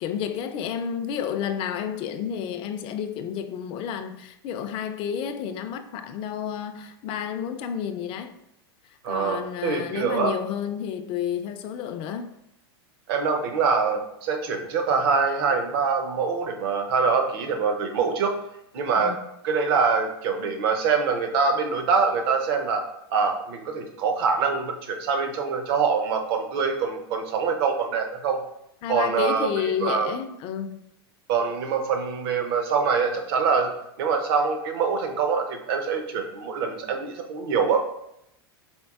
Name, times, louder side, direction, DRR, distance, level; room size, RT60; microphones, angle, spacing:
voice 1, 0.0-8.3 9.1-12.3 19.0-19.2 28.8-30.8, left 8 dB, 40° left, 0.4 m, -30 dB
voice 2, 9.0-10.3 13.1-18.3 18.7-19.1 19.4-22.8 23.1-28.4 28.9-29.5 29.8-30.1 31.3-33.7 34.0-37.8, right 5 dB, 60° right, 0.7 m, -24 dB
4.4 x 3.7 x 2.3 m
hypercardioid pair, 105°, 14 cm